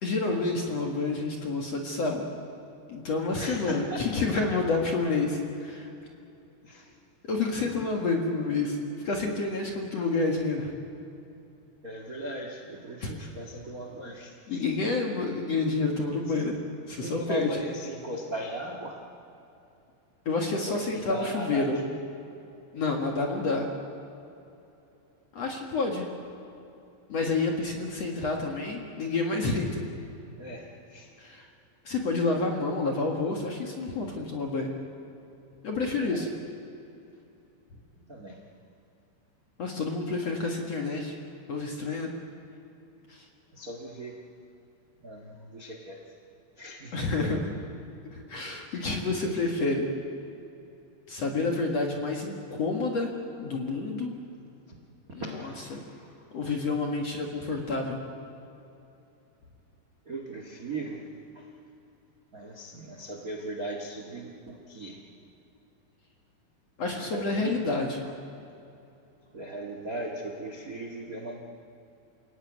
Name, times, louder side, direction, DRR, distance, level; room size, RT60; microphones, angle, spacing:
voice 1, 0.0-2.3 2.9-5.9 7.2-8.8 9.0-10.7 13.0-13.1 14.5-16.6 16.9-17.5 20.3-21.8 22.7-23.7 25.3-26.1 27.1-29.8 31.2-31.5 31.8-34.7 35.6-36.3 39.6-41.2 41.5-42.1 43.1-43.3 46.9-47.4 48.1-49.9 51.1-53.1 53.4-54.2 55.1-55.8 56.3-58.0 66.8-68.1, left 3 dB, 50° left, 1 dB, 2.2 m, -29 dB
voice 2, 3.3-4.1 6.6-6.9 11.8-14.6 17.0-19.0 20.7-22.0 30.4-31.1 36.0-36.3 38.0-38.4 43.5-44.2 45.0-46.0 46.6-47.3 54.7-54.8 55.2-56.3 60.0-61.5 62.3-65.0 66.9-67.7 69.3-71.4, right 2 dB, 50° right, 2 dB, 1.0 m, -38 dB
28.5 x 17.5 x 9.4 m, 2.8 s
omnidirectional pair, 5.3 m